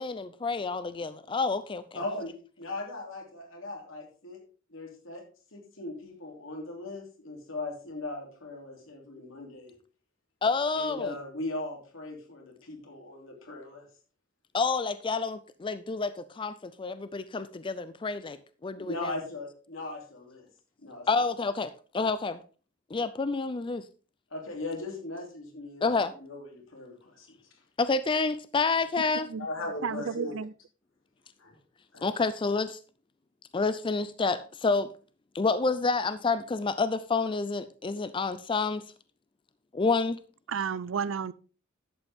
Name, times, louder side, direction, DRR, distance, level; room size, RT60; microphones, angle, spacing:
voice 1, 0.0-2.0 10.4-11.1 14.5-18.4 18.6-19.1 21.1-22.4 22.9-23.8 25.8-26.1 27.8-29.3 32.0-32.8 33.5-34.9 35.3-38.8 39.7-40.2, left 4 dB, 25° left, 0.4 m, -29 dB
voice 2, 1.9-4.4 4.7-5.2 5.5-9.7 10.7-13.9 18.7-20.5 20.8-21.2 24.3-27.4 29.4-30.3 31.4-31.6 31.9-32.1, left 2 dB, 80° left, 3.0 m, -39 dB
voice 3, 29.0-29.5 29.8-30.5 40.5-41.3, right 6 dB, 75° right, 0.5 m, -32 dB
11.5 x 8.1 x 3.6 m
head